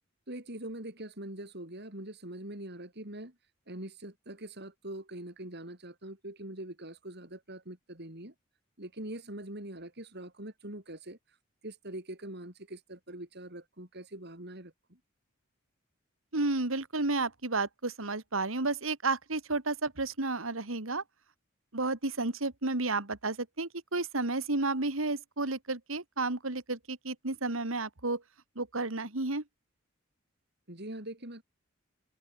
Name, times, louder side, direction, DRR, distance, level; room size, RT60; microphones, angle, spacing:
voice 1, 0.3-3.3 3.7-8.3 8.8-11.4 11.6-15.0 30.7-31.4, right 1 dB, 55° right, 6.3 m, -43 dB
voice 2, 16.3-21.0 21.7-28.2 28.6-29.4, right 3 dB, 85° right, 2.5 m, -32 dB
head